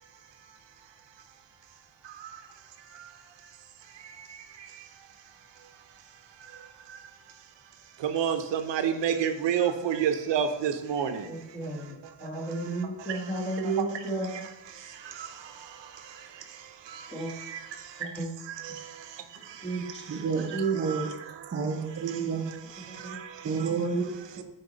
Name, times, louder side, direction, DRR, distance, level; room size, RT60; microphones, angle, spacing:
voice 1, 2.0-2.5 2.9-3.1 3.9-4.9 6.4-7.1 8.0-11.4 12.0-12.3 13.0-13.9 14.3-18.1 18.5-19.9 20.5-21.6 22.1-22.2 22.7-23.7, right 8 dB, 80° right, 7 dB, 0.8 m, -33 dB
voice 2, 11.3-14.5 17.1-17.3 18.0-18.3 19.6-20.2 20.5-20.8 22.9-23.2, right 3 dB, 15° left, -1 dB, 1.3 m, -33 dB
voice 3, 20.1-21.1 21.5-22.5 23.4-24.4, right 5 dB, 30° right, 0 dB, 0.7 m, -30 dB
9.3 x 4.1 x 4.0 m, 0.99 s
wide cardioid pair, 165°, 43 cm